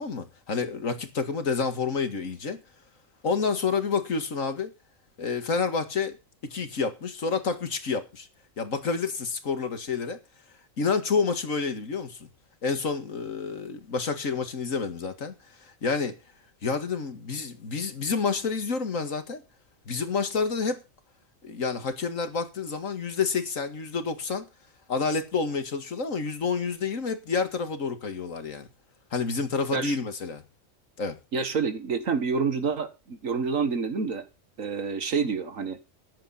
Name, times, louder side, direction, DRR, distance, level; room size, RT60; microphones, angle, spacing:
voice 1, 0.0-2.6 3.2-4.7 5.2-6.2 6.4-8.3 8.6-10.2 10.8-12.2 12.6-16.2 16.6-19.4 19.9-20.8 21.4-24.5 24.9-28.7 29.1-30.4 31.0-31.2, left 5 dB, 75° left, 2.2 m, -29 dB
voice 2, 31.3-34.3 34.6-35.8, right 5 dB, 75° right, 2.0 m, -28 dB
14.5 x 10.5 x 4.2 m
omnidirectional pair, 1.4 m